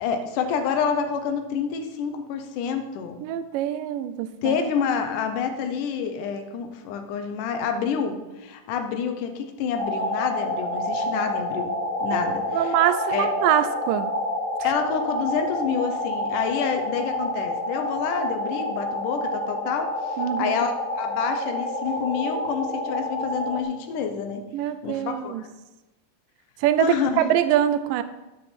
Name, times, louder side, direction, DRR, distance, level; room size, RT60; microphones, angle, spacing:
voice 1, 0.0-3.2 4.4-12.7 13.1-13.3 14.6-24.4 24.8-25.5 26.8-27.3, left 6 dB, 75° left, 7 dB, 2.3 m, -28 dB
voice 2, 3.2-4.6 12.5-14.1 20.2-20.5 24.5-25.4 26.6-28.0, right 11 dB, 85° right, 11 dB, 2.2 m, -24 dB
sound 1, 9.8-23.6, left 1 dB, 55° left, 2.4 m, -28 dB
9.9 x 7.3 x 4.3 m, 1.0 s
omnidirectional pair, 3.9 m